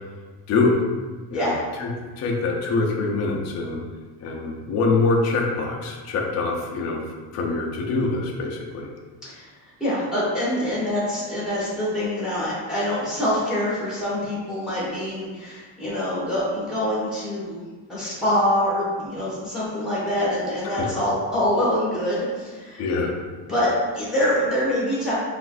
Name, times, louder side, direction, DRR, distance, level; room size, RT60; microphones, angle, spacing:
voice 1, 2.2-3.8 4.2-8.9 20.8-20.9 22.8-23.1, left 3 dB, 40° left, -1 dB, 0.5 m, -24 dB
voice 2, 9.8-17.6 17.9-22.8 23.5-25.1, left 1 dB, ahead, -8 dB, 1.2 m, -25 dB
6.1 x 2.5 x 2.5 m, 1.4 s
cardioid pair, 170°, 42 cm